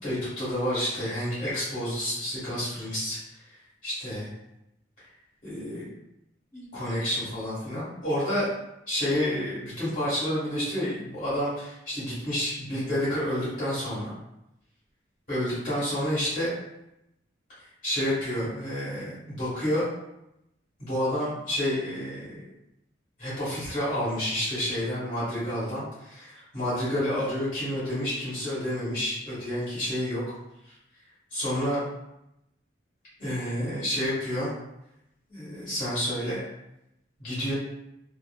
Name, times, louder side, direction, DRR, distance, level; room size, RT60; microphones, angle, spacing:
voice 1, 0.0-3.2 3.8-4.3 5.4-5.9 6.5-8.5 8.9-14.1 15.3-16.5 17.8-19.9 20.8-22.4 23.2-30.2 31.3-31.8 33.2-34.5 35.3-36.4 37.2-37.5, equal, 45° left, -11 dB, 1.5 m, -29 dB
2.7 x 2.4 x 2.3 m, 0.85 s
head